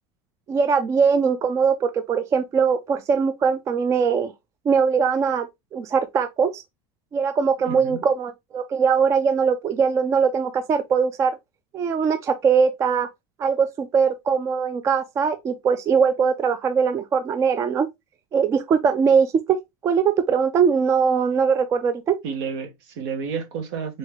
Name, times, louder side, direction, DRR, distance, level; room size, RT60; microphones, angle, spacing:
voice 1, 0.5-4.3 4.7-5.5 5.7-6.6 7.1-11.3 11.7-13.1 13.4-17.9 18.3-19.6 19.8-22.2, right 6 dB, 20° right, 0.4 m, -21 dB
voice 2, 7.7-8.0 22.2-24.0, right 6 dB, 65° right, 1.8 m, -31 dB
3.9 x 3.6 x 3.5 m
supercardioid pair, 165°, 15 cm